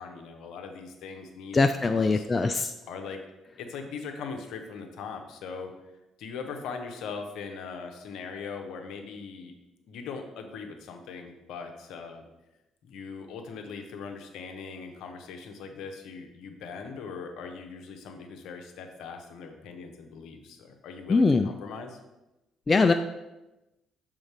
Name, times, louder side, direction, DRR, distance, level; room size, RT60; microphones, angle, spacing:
voice 1, 0.0-2.3 2.9-3.2 3.6-5.7 6.2-9.5 9.9-12.2 12.8-22.0, left 5 dB, 60° left, 4 dB, 0.8 m, -40 dB
voice 2, 1.5-2.7 21.1-21.5 22.7-22.9, left 3 dB, 30° left, 7 dB, 0.3 m, -22 dB
6.4 x 3.7 x 4.7 m, 1.0 s
figure-of-eight pair, 45°, 0 cm